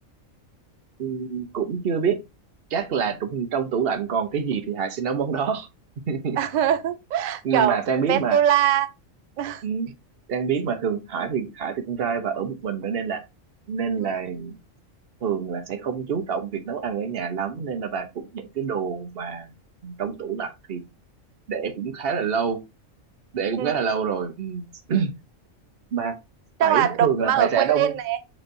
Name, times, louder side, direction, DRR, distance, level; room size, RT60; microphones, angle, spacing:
voice 1, 1.0-2.2 2.7-5.7 6.1-6.4 7.4-8.4 9.6-9.9 10.3-13.2 13.7-14.6 15.2-19.5 19.8-20.8 21.5-22.6 23.3-25.1 25.9-26.2 26.6-27.9, right 6 dB, 50° right, 0.9 m, -26 dB
voice 2, 6.4-7.8 8.1-8.9 9.4-9.6 14.0-14.1 23.6-23.8 26.6-28.2, right 10 dB, 90° right, 0.4 m, -22 dB
6.1 x 3.1 x 2.6 m
omnidirectional pair, 1.4 m